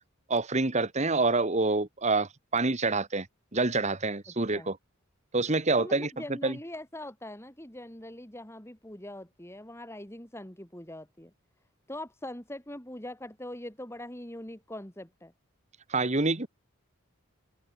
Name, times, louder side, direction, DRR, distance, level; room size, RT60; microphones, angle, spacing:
voice 1, 0.3-3.3 3.5-4.8 5.3-6.1 6.4-6.6 15.9-16.5, right 3 dB, 35° right, 1.5 m, -27 dB
voice 2, 5.8-11.3 11.9-15.3, left 1 dB, 10° left, 3.5 m, -42 dB
head